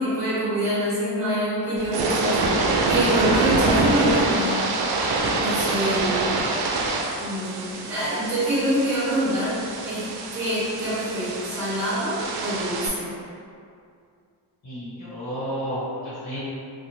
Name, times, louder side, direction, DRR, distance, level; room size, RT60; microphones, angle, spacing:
voice 1, 0.0-2.5 2.9-4.6 5.4-6.4 7.2-9.6 9.8-10.1 10.3-13.1, right 1 dB, 35° right, -12 dB, 1.5 m, -25 dB
sound 1, 1.8-12.9, right 3 dB, 55° right, 0.5 m, -25 dB
voice 2, 14.6-16.4, equal, 40° left, -12 dB, 1.3 m, -31 dB
2.5 x 2.2 x 3.2 m, 2.3 s
cardioid pair, 65°, 47 cm